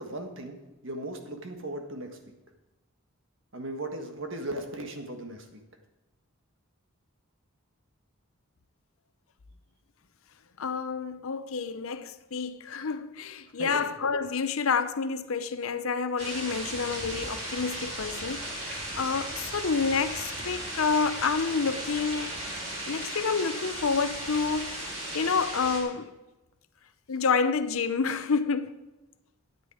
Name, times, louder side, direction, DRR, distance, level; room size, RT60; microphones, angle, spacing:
voice 1, 0.0-2.3 3.5-5.6 13.6-13.9, right 1 dB, 60° right, 1.6 m, -37 dB
voice 2, 10.6-22.3 22.9-24.8 25.1-26.1 27.1-28.9, left 5 dB, 75° left, 0.7 m, -29 dB
sound 1, 16.2-25.8, right 1 dB, 30° right, 3.6 m, -36 dB
13.0 x 9.8 x 5.0 m
head